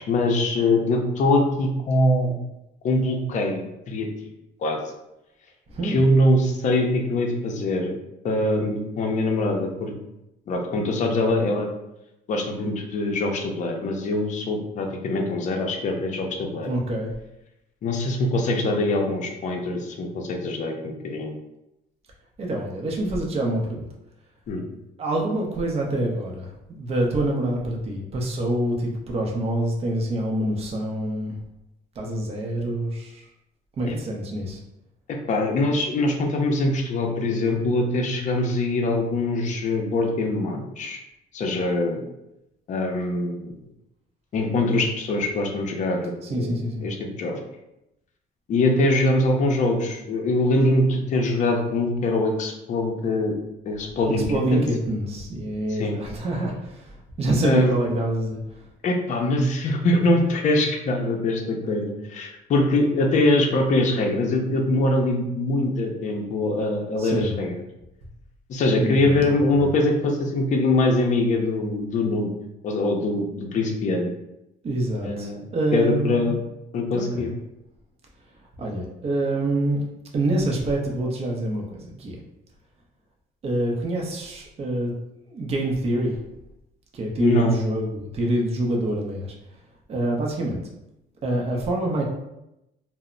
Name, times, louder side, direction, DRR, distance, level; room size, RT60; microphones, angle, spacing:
voice 1, 0.1-2.3 2.8-4.3 4.6-4.9 5.8-7.9 8.2-9.9 10.5-11.7 12.3-16.7 17.8-21.3 24.5-24.6 33.9-34.0 35.1-41.0 41.3-42.0 42.7-43.5 44.3-46.5 46.8-47.4 48.5-53.4 53.7-54.2 54.5-54.6 55.8-56.0 57.4-57.7 58.8-67.5 68.5-72.3 72.6-74.1 75.0-75.4 75.7-76.4 76.7-77.3 87.2-87.6, left 2 dB, 45° left, 2 dB, 0.5 m, -23 dB
voice 2, 5.7-6.1 16.6-17.1 22.4-23.9 25.0-31.4 32.0-33.3 33.8-34.6 46.2-46.9 54.3-58.7 67.0-67.3 68.7-69.7 74.6-76.3 76.9-77.3 78.6-79.8 80.1-82.2 83.4-84.9 85.3-86.2 86.9-89.3 89.9-90.6 91.2-92.0, right 1 dB, 35° right, -1 dB, 0.6 m, -26 dB
2.0 x 2.0 x 3.7 m, 0.88 s
cardioid pair, 110°, 17 cm